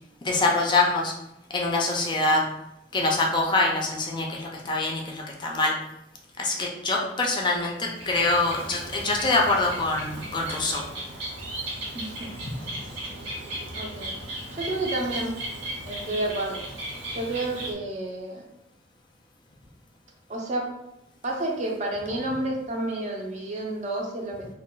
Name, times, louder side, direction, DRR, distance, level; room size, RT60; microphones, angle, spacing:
voice 1, 0.2-1.1 1.5-2.5 2.9-5.7 6.4-10.8, left 2 dB, 25° left, -1 dB, 0.4 m, -24 dB
Bird, 7.7-17.7, right 1 dB, 70° right, 0.9 m, -36 dB
voice 2, 11.9-12.3 13.7-14.2 14.5-15.5 15.9-16.6 17.1-18.4 20.3-20.7 21.2-24.5, right 2 dB, 40° right, 0 dB, 0.5 m, -30 dB
2.2 x 2.2 x 3.8 m, 0.85 s
head